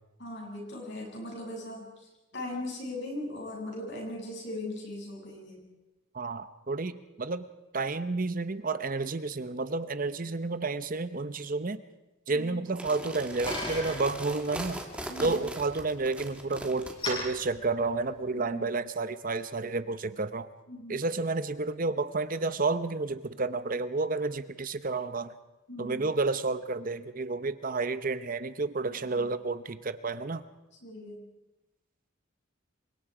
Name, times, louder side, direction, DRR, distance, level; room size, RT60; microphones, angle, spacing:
voice 1, 0.2-5.6 12.3-12.6 15.1-15.4 18.3-18.7 20.7-21.1 25.7-26.1 28.9-29.3 30.8-31.3, left 1 dB, 55° left, -1 dB, 7.9 m, -39 dB
voice 2, 6.1-7.5 7.7-11.8 12.3-14.8 15.2-20.5 20.9-25.3 25.8-30.4, right 3 dB, 40° right, 12 dB, 0.8 m, -31 dB
sound 1, 12.7-16.9, right 1 dB, 5° right, 2.3 m, -39 dB
Bicycle, 12.8-18.5, left 1 dB, 25° left, 8.0 m, -41 dB
29.0 x 24.5 x 5.0 m, 1.0 s
head